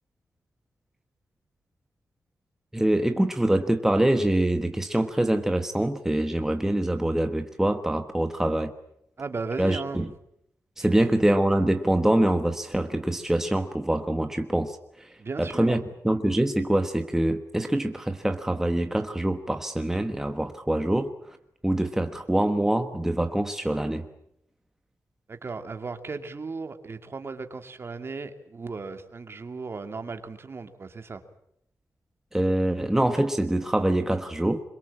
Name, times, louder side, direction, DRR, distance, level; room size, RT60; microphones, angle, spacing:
voice 1, 2.7-8.7 9.6-10.1 10.8-21.1 21.6-24.1 32.3-34.6, right 1 dB, 5° right, 7 dB, 1.3 m, -25 dB
voice 2, 9.2-10.1 15.2-15.8 25.3-31.2, right 4 dB, 40° right, 7 dB, 2.5 m, -36 dB
26.0 x 23.0 x 8.7 m, 0.74 s
wide cardioid pair, 140°, 6 cm